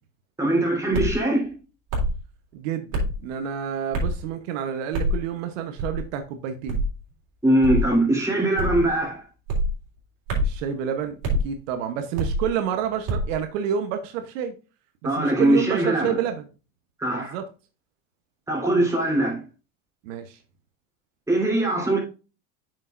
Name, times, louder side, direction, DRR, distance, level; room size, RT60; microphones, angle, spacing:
voice 1, 0.4-1.5 7.4-9.2 15.0-16.2 17.0-17.4 18.5-19.4 21.3-22.0, right 1 dB, 10° right, 3.6 m, -21 dB
sound 1, 0.9-1.2 1.9-2.2 2.9-3.2 3.9-4.2 4.9-5.2 5.8-6.1 6.7-6.9 7.6-7.9 8.6-8.9 9.5-9.7 10.3-10.6 11.2-11.4 12.2-12.5 13.1-13.3, equal, 50° right, 3.6 m, -25 dB
voice 2, 2.5-6.8 10.4-11.2 11.4-14.5 15.0-16.4 17.1-17.4 20.0-20.4, right 9 dB, 80° right, 1.1 m, -29 dB
8.7 x 6.3 x 2.5 m
supercardioid pair, 105°, 39 cm